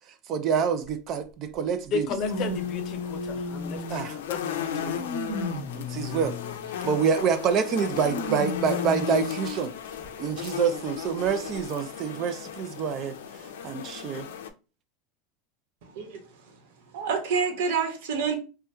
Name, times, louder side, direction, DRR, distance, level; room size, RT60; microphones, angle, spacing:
voice 1, 0.3-2.1 3.9-4.2 5.7-6.4 6.8-9.7 10.2-13.2 13.6-14.3, right 6 dB, 40° right, 0.4 m, -27 dB
sound 1, 0.9-1.0 2.1-4.1 4.7-6.7 7.9-9.3 10.0-10.1 11.3-11.4, left 2 dB, ahead, 1.1 m, -34 dB
voice 2, 1.9-5.0, left 6 dB, 40° left, 0.6 m, -34 dB
sound 2, 2.2-14.5, left 8 dB, 90° left, 0.4 m, -36 dB
voice 3, 15.9-16.6 16.9-18.3, right 5 dB, 75° right, 1.0 m, -28 dB
2.9 x 2.2 x 3.4 m
supercardioid pair, 140°, 0 cm